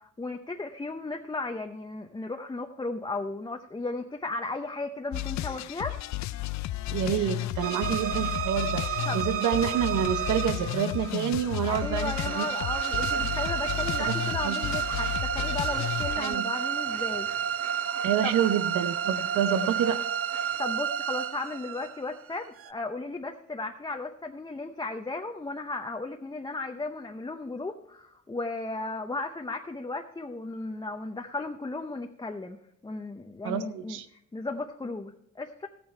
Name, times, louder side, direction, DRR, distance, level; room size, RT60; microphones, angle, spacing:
voice 1, 0.0-6.0 9.1-9.2 11.6-17.3 18.2-18.3 20.6-32.6 32.8-35.7, left 3 dB, 15° left, 3 dB, 0.7 m, -35 dB
sound 1, 5.1-16.3, left 16 dB, 65° left, 0.4 m, -33 dB
voice 2, 6.9-12.5 13.1-13.4 14.0-14.1 14.4-14.6 16.2-16.5 18.0-20.0 33.4-34.1, right 9 dB, 80° right, 11 dB, 0.9 m, -28 dB
sound 2, 7.6-22.7, right 9 dB, 50° right, 0.6 m, -31 dB
sound 3, 11.6-20.6, right 5 dB, 65° right, 1.8 m, -47 dB
13.5 x 8.9 x 4.4 m, 0.73 s
cardioid pair, 90°, 30 cm